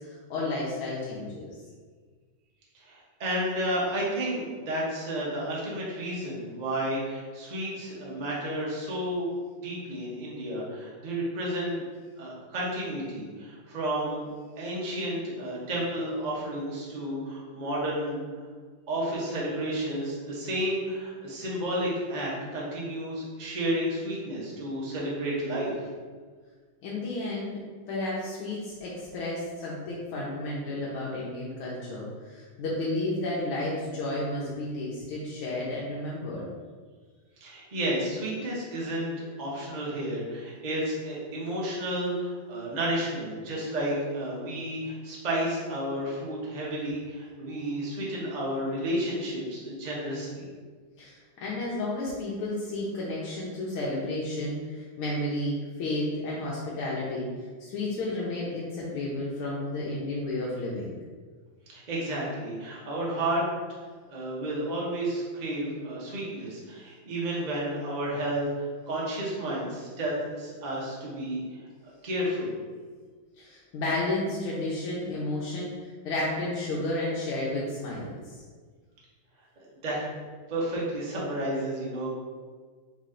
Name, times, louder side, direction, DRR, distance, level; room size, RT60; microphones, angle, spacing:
voice 1, 0.0-1.5 26.8-27.6 27.9-36.5 51.0-57.3 57.6-61.0 73.4-78.3, left 2 dB, 85° left, -6 dB, 1.6 m, -32 dB
voice 2, 2.8-9.3 9.6-11.8 12.2-14.3 14.6-18.2 18.9-25.7 37.4-50.5 61.7-63.4 64.1-71.4 72.0-72.5 79.8-80.0 80.5-82.1, right 1 dB, 35° right, -5 dB, 0.7 m, -31 dB
4.1 x 3.1 x 3.8 m, 1.5 s
omnidirectional pair, 2.3 m